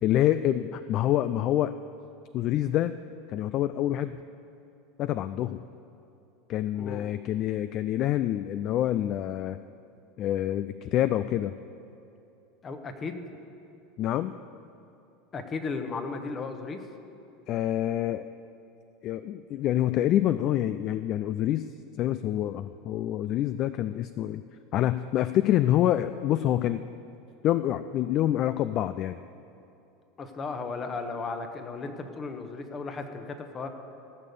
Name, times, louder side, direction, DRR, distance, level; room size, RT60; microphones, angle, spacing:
voice 1, 0.0-1.8 2.3-2.9 3.3-4.2 5.0-5.6 6.5-9.6 10.2-11.5 14.0-14.3 17.5-18.3 19.0-21.7 22.0-24.4 24.7-26.9 27.4-29.2, left 12 dB, 50° left, 13 dB, 0.3 m, -26 dB
voice 2, 12.6-13.3 15.3-16.8 30.2-33.7, left 4 dB, 30° left, 7 dB, 1.2 m, -35 dB
15.0 x 6.6 x 7.0 m, 2.7 s
hypercardioid pair, 80°, 0 cm